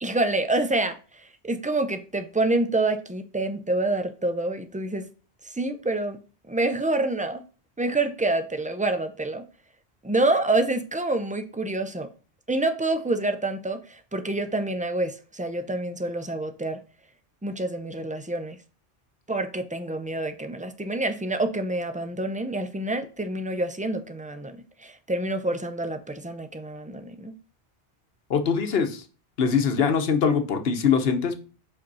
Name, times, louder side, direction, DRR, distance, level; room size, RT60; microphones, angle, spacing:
voice 1, 0.0-5.1 5.4-6.2 6.5-7.4 7.8-9.4 10.0-12.1 12.5-16.8 17.4-18.6 19.3-27.3, right 2 dB, 10° right, 0.4 m, -27 dB
voice 2, 28.3-29.0 29.4-31.4, left 6 dB, 70° left, 1.1 m, -22 dB
5.1 x 4.3 x 5.4 m
omnidirectional pair, 1.1 m